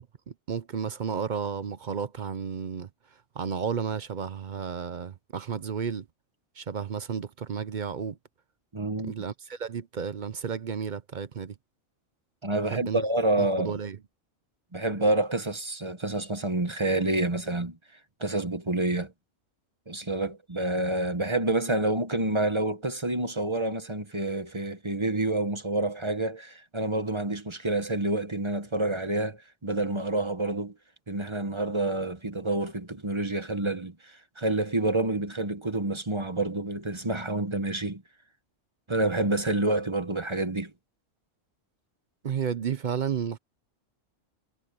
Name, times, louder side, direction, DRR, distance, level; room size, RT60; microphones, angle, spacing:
voice 1, 0.3-2.9 3.4-6.1 6.6-8.2 9.0-11.5 12.7-13.0 13.4-14.0 42.2-43.4, right 7 dB, 50° right, 0.6 m, -32 dB
voice 2, 8.7-9.1 12.4-13.8 14.7-17.8 18.2-19.1 19.9-30.7 31.1-38.0 38.9-40.7, right 2 dB, 25° right, 1.1 m, -28 dB
omnidirectional pair, 1.4 m